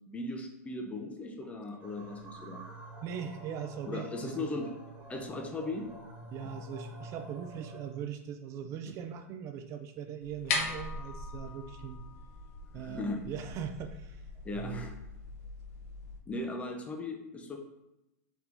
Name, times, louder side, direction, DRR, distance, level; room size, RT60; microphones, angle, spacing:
voice 1, 0.1-2.6 3.9-4.7 5.1-5.9 12.7-13.2 14.4-14.9 16.3-17.6, left 2 dB, 15° left, 4 dB, 0.5 m, -37 dB
sound 1, 1.8-8.0, right 1 dB, 15° right, 0.8 m, -48 dB
voice 2, 3.0-4.5 6.3-12.0 12.7-14.2 14.5-14.9, right 8 dB, 35° right, 7 dB, 0.3 m, -40 dB
sound 2, 10.2-16.2, left 4 dB, 60° left, 0.8 m, -40 dB
4.5 x 3.4 x 2.5 m, 0.89 s
hypercardioid pair, 125°, 9 cm